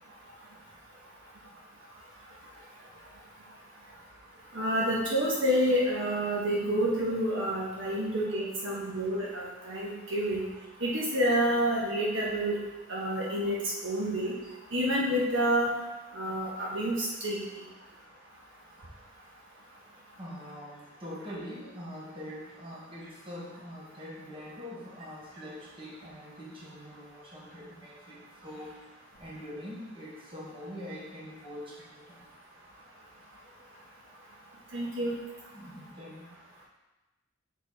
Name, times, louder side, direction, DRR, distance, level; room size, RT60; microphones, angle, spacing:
voice 1, 4.5-10.4 10.8-12.6 12.9-13.6 13.8-14.3 14.7-15.7 16.1-17.4 34.7-35.1, equal, 65° right, -5 dB, 1.5 m, -28 dB
voice 2, 19.9-32.3 35.5-36.3, equal, 25° right, -6 dB, 1.5 m, -44 dB
6.6 x 4.5 x 4.3 m, 1.1 s
head